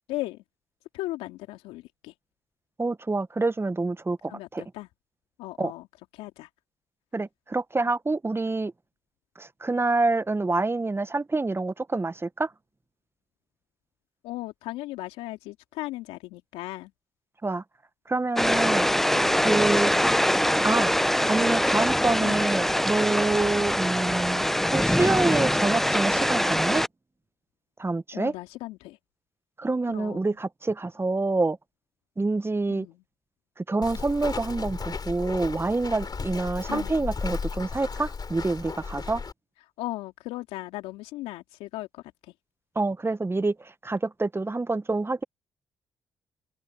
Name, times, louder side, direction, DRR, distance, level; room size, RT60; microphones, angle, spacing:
voice 1, 0.1-0.4 0.9-2.1 4.3-4.9 5.4-5.9 6.1-6.5 14.2-16.9 19.1-19.4 22.2-22.4 28.1-29.0 29.9-30.4 32.7-33.0 36.7-37.0 39.8-42.3, left 18 dB, 80° left, 2.9 m, -37 dB
voice 2, 2.8-4.6 5.6-5.7 7.1-8.7 9.4-12.5 17.4-17.6 18.1-18.9 19.4-19.9 20.6-20.9 21.3-26.8 27.8-28.3 29.6-31.6 32.2-32.9 33.6-39.2 42.7-45.2, right 3 dB, 25° right, 1.2 m, -27 dB
sound 1, 18.4-26.9, equal, 5° left, 0.8 m, -23 dB
Walk footsteps, 33.8-39.3, left 5 dB, 40° left, 3.4 m, -34 dB
open air
hypercardioid pair, 45°, 10 cm